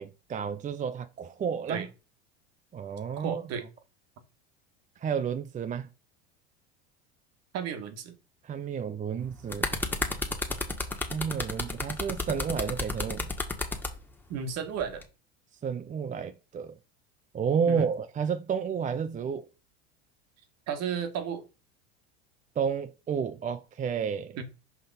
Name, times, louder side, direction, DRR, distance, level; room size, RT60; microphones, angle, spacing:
voice 1, 0.0-1.9 2.7-3.4 5.0-5.9 8.4-9.7 11.1-13.3 15.6-16.7 17.3-19.5 22.6-24.4, right 7 dB, 25° right, 0.5 m, -31 dB
voice 2, 3.2-3.6 7.5-8.2 14.3-15.0 17.7-17.9 20.7-21.4 24.4-24.5, right 7 dB, 50° right, 1.5 m, -33 dB
sound 1, 9.2-13.9 14.8-15.0, left 2 dB, 5° left, 1.5 m, -31 dB
5.9 x 5.2 x 4.1 m
hypercardioid pair, 95°, 32 cm